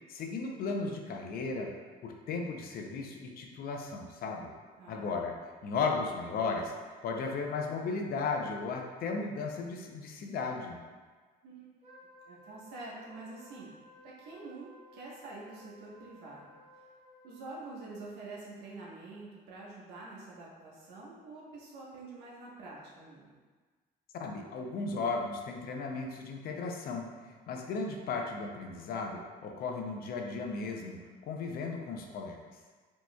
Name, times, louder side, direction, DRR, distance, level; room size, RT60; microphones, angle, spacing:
voice 1, 0.1-1.7 2.0-4.5 4.9-5.4 5.6-6.7 7.0-10.8 24.1-31.0 31.3-32.4, left 4 dB, 60° left, 2 dB, 0.5 m, -35 dB
voice 2, 4.8-5.3 11.4-11.7 12.2-13.7 14.0-16.6 17.2-23.3, right 3 dB, 80° right, -5 dB, 1.1 m, -47 dB
Wind instrument woodwind instrument, 11.8-18.1, left 1 dB, 40° right, 1.2 m, -57 dB
4.3 x 3.0 x 2.2 m, 1.4 s
cardioid pair, 110°, 17 cm